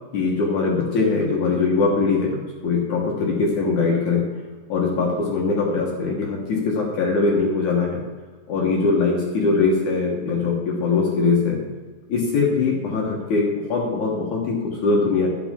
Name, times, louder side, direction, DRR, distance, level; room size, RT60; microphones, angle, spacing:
voice 1, 0.1-4.2 4.7-8.0 8.5-11.6 12.1-15.3, left 4 dB, 65° left, -2 dB, 1.9 m, -21 dB
13.0 x 9.5 x 3.8 m, 1.4 s
omnidirectional pair, 5.5 m